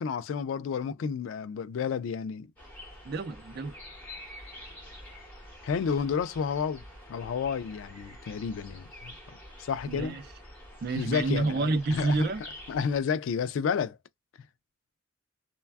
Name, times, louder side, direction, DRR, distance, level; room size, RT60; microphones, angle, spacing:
voice 1, 0.0-2.5 5.6-6.8 7.1-9.1 9.6-10.2 11.0-12.2 12.7-14.0, left 6 dB, 85° left, 0.3 m, -31 dB
sound 1, 2.6-13.0, equal, 10° left, 1.4 m, -47 dB
voice 2, 3.0-3.7 9.9-10.2 10.8-12.4, right 3 dB, 50° right, 0.4 m, -29 dB
3.2 x 2.2 x 2.3 m
head